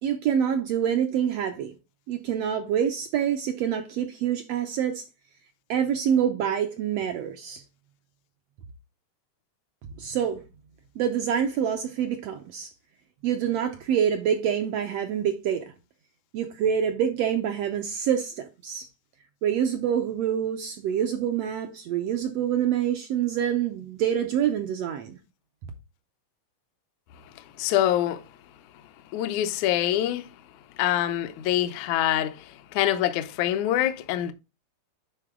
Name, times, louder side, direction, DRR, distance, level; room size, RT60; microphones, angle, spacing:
voice 1, 0.0-1.7 2.1-5.0 5.7-7.6 10.0-10.4 11.0-12.7 13.2-15.6 16.3-18.9 19.4-25.2, right 9 dB, 75° right, 1.5 m, -26 dB
voice 2, 27.6-28.2 29.1-30.3 30.8-34.3, left 12 dB, 75° left, 1.9 m, -25 dB
10.0 x 3.9 x 3.6 m
omnidirectional pair, 3.6 m